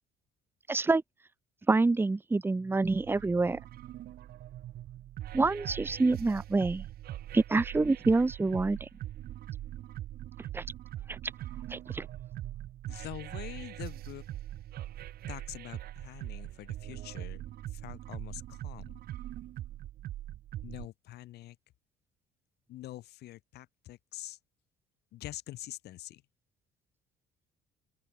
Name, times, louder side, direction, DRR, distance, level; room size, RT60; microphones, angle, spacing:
voice 1, 0.7-1.0 1.7-3.6 5.3-6.8 7.3-8.9 10.5-10.6 11.1-11.2 11.7-12.1, right 3 dB, 15° right, 0.8 m, -27 dB
sound 1, 2.8-20.9, right 13 dB, 65° right, 1.6 m, -42 dB
voice 2, 12.9-14.2 15.3-17.4 17.7-19.0 20.6-21.6 22.7-24.4 25.1-26.2, left 15 dB, 75° left, 5.0 m, -45 dB
open air
cardioid pair, 110°, 17 cm